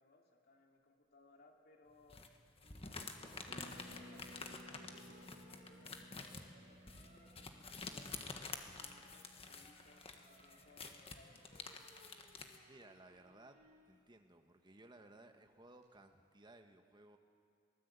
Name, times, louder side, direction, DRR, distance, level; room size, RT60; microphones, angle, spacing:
voice 1, 0.0-2.4 2.8-11.4, left 2 dB, 55° left, 1 dB, 2.9 m, -67 dB
sound 1, 2.1-12.6, left 4 dB, 30° left, 1.5 m, -49 dB
sound 2, 2.6-13.8 15.4-15.9, right 1 dB, 40° right, 7.9 m, -67 dB
Harp, 3.5-13.1 13.3-13.4 13.6-13.9, equal, 60° right, 3.7 m, -61 dB
voice 2, 12.7-13.6 13.8-17.2, right 2 dB, 25° right, 6 dB, 1.3 m, -60 dB
23.5 x 18.0 x 8.2 m, 2.2 s
head